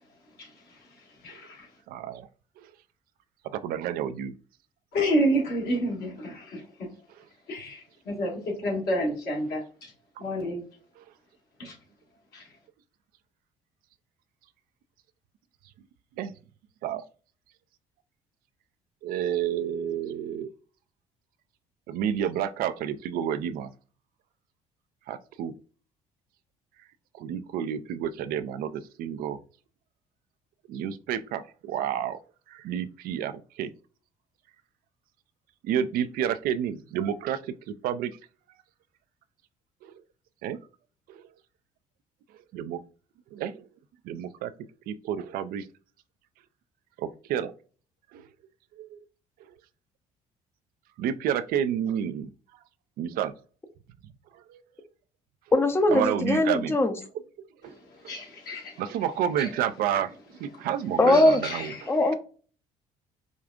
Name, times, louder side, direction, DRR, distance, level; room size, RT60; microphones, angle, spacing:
voice 1, 0.4-0.8 1.2-1.7 4.9-6.6 7.5-9.9 10.2-10.6 11.6-11.8 12.3-12.5 57.7-58.8 59.4-59.5 61.1-62.2, equal, 65° left, 1.8 m, -30 dB
voice 2, 1.9-2.3 2.6-2.7 3.4-4.3 10.2-10.3 11.0-11.1 16.2-16.3 16.8-17.0 19.0-20.5 21.9-23.7 25.1-25.5 27.2-29.4 30.7-32.2 32.5-33.7 35.6-37.5 37.8-38.1 39.8-40.0 40.4-40.6 41.1-41.3 42.5-42.8 43.3-43.6 44.0-44.5 44.9-45.7 47.0-47.5 48.1-48.3 48.8-49.0 51.0-52.3 53.0-53.3 54.3-54.6 55.9-56.8 57.4-57.8 58.0-58.1 58.8-61.7, right 9 dB, 60° right, 0.4 m, -30 dB
voice 3, 55.5-56.9 61.0-61.4 61.9-62.2, left 2 dB, 15° left, 0.6 m, -21 dB
5.0 x 2.3 x 2.4 m
hypercardioid pair, 55°, 17 cm